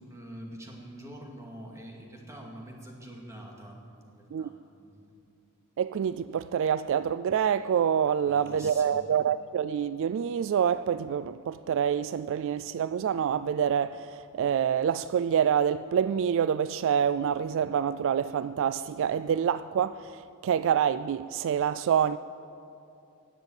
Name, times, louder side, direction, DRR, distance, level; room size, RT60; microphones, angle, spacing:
voice 1, 0.0-4.5 4.8-5.2 8.3-9.1, right 1 dB, 15° right, 2.2 m, -45 dB
voice 2, 5.8-22.2, right 8 dB, 60° right, 0.3 m, -27 dB
18.5 x 7.5 x 8.9 m
head